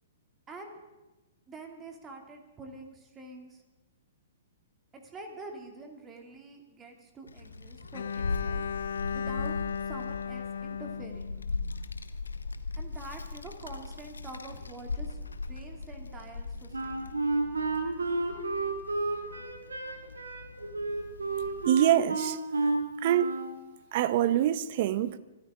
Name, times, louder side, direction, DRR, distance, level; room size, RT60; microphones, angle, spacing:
voice 1, 0.5-0.8 1.5-3.6 4.9-8.6 9.1-9.6 9.9-11.3 12.8-17.0, right 2 dB, 20° right, 2.7 m, -46 dB
Child speech kid speaking, 7.3-21.7, left 3 dB, 85° left, 1.1 m, -39 dB
Bowed string instrument, 7.9-12.0, left 7 dB, 70° left, 0.4 m, -36 dB
Wind instrument woodwind instrument, 16.7-23.5, right 3 dB, 85° right, 2.4 m, -31 dB
voice 2, 21.6-22.4 23.0-23.4 23.9-25.2, right 11 dB, 50° right, 0.9 m, -25 dB
25.0 x 13.5 x 3.8 m
figure-of-eight pair, 120°, 0 cm